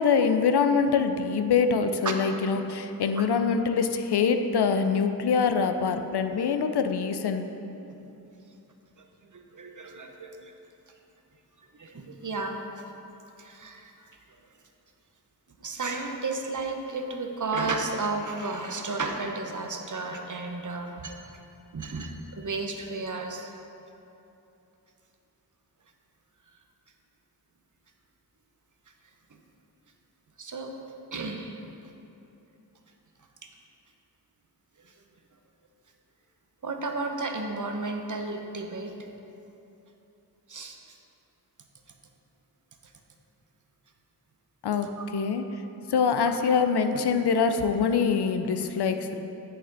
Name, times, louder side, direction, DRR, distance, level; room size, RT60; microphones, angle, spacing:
voice 1, 0.0-7.5 44.6-45.4 45.8-49.2, left 5 dB, 85° left, 7 dB, 0.5 m, -24 dB
voice 2, 9.3-10.5 11.7-12.9 13.4-13.9 14.3-14.4 15.6-21.2 21.7-23.5 30.4-30.7 31.1-31.6 34.8-34.9 36.6-39.0 40.5-41.0 45.0-45.1, right 3 dB, 50° right, 3 dB, 0.8 m, -33 dB
7.9 x 6.6 x 3.9 m, 2.9 s
wide cardioid pair, 60°, 39 cm